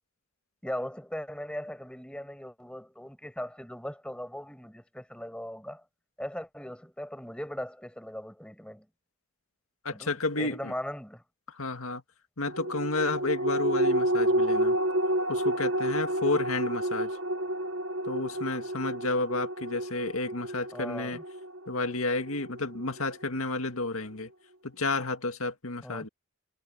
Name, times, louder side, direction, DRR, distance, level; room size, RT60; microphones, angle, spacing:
voice 1, 0.6-5.8 6.2-8.9 9.9-11.2 20.7-21.2 25.8-26.1, equal, 5° left, 7.0 m, -39 dB
voice 2, 9.8-10.7 11.5-12.0 12.4-14.8 15.3-17.2 18.1-21.2 21.7-24.3 24.6-26.1, left 3 dB, 85° left, 2.0 m, -31 dB
sound 1, 12.5-23.3 23.7-23.8, right 1 dB, 65° right, 1.3 m, -30 dB
head